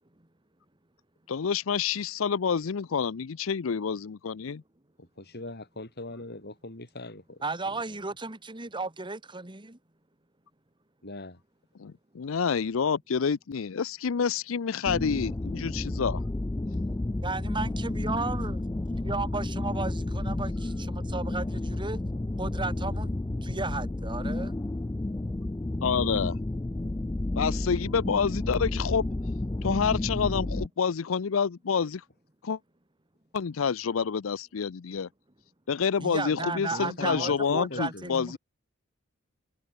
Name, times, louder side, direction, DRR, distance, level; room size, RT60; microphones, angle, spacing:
voice 1, 1.3-4.6 11.8-16.2 25.8-26.4 27.4-29.1 29.6-32.0 32.4-32.6 33.3-35.1 35.7-38.4, left 6 dB, 75° left, 0.5 m, -28 dB
voice 2, 5.0-7.4 11.0-11.4 36.7-38.1, left 2 dB, 55° left, 4.2 m, -40 dB
voice 3, 7.4-9.8 17.2-18.6 19.0-22.0 22.4-24.6 36.0-38.4, right 3 dB, 25° right, 2.0 m, -34 dB
sound 1, 14.9-30.7, left 2 dB, 15° left, 0.4 m, -31 dB
head